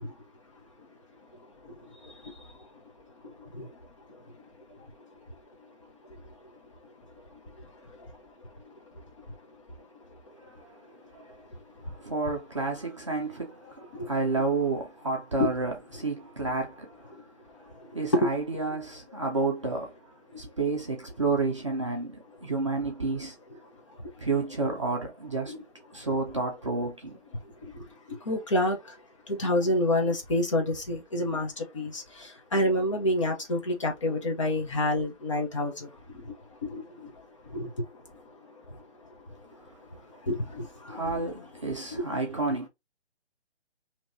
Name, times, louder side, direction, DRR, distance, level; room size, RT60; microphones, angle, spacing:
voice 1, 12.0-13.7 14.0-16.9 17.9-19.9 20.4-23.3 24.2-25.5 25.9-27.2 40.9-42.7, right 3 dB, 25° right, 0.6 m, -30 dB
voice 2, 28.3-28.8 29.3-31.9 32.5-35.7 36.7-36.8 37.5-37.7 40.3-40.4, left 1 dB, 25° left, 0.8 m, -27 dB
4.9 x 2.9 x 2.6 m
hypercardioid pair, 165°, 35 cm